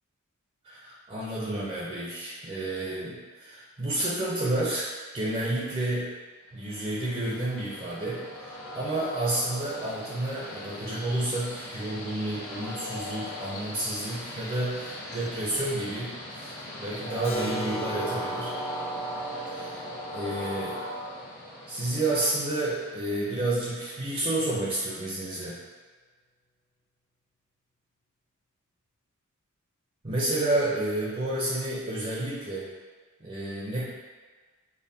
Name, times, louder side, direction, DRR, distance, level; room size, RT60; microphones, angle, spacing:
voice 1, 0.6-4.9 5.1-6.1 6.5-18.6 19.5-20.8 21.7-25.6 30.0-32.7 33.2-33.8, right 1 dB, 30° right, -6 dB, 0.6 m, -30 dB
Train, 6.7-23.4, equal, 75° left, 1.3 m, -38 dB
Keyboard (musical), 17.2-22.9, right 1 dB, 30° left, 0.8 m, -40 dB
5.3 x 2.2 x 2.7 m, 1.4 s
head